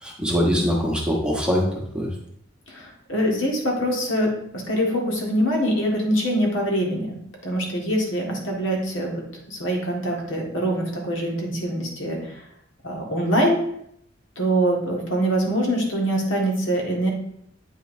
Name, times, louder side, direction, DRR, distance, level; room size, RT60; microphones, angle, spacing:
voice 1, 0.0-2.2, equal, 5° right, -2 dB, 1.0 m, -23 dB
voice 2, 2.7-7.2 7.4-12.4 12.8-13.6 14.4-17.1, equal, 75° left, 0 dB, 1.7 m, -24 dB
8.2 x 5.4 x 2.7 m, 0.71 s
head